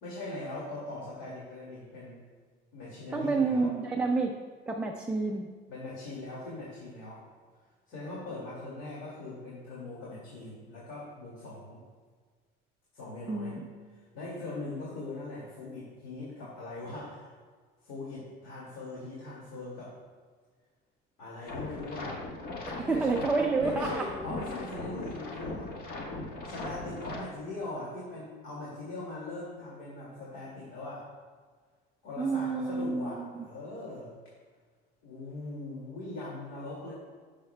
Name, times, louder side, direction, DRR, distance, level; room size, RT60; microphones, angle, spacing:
voice 1, 0.0-2.2 2.7-3.7 5.7-7.2 7.9-11.8 12.9-13.6 14.1-17.3 17.8-19.9 21.2-22.1 22.8-23.2 23.6-25.7 26.4-31.1 32.0-34.1 35.0-36.9, left 2 dB, 65° left, -6 dB, 2.3 m, -40 dB
voice 2, 3.1-4.3 4.7-5.5 13.3-13.7 22.7-24.0 32.2-33.4, right 3 dB, 5° right, 0 dB, 0.3 m, -29 dB
sound 1, 21.5-27.2, left 2 dB, 45° left, 1.3 m, -39 dB
16.5 x 6.4 x 2.2 m, 1.5 s
cardioid pair, 175°, 21 cm